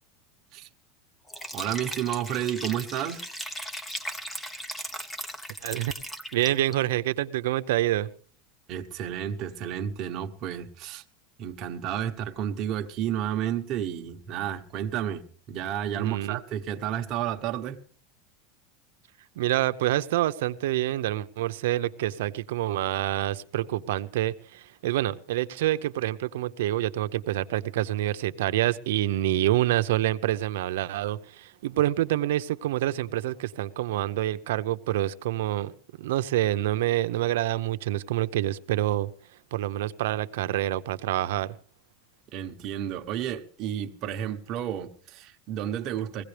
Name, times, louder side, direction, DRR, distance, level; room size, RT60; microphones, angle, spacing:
Liquid, 1.3-6.7, equal, 10° left, 0.8 m, -37 dB
voice 1, 1.5-3.2 8.7-11.0 11.4-17.8 42.3-46.2, right 10 dB, 35° right, 1.1 m, -31 dB
voice 2, 5.6-5.9 6.3-8.1 15.9-16.4 19.4-39.1 39.5-41.6, right 14 dB, 85° right, 0.7 m, -27 dB
21.0 x 16.5 x 3.4 m
supercardioid pair, 165°, 0 cm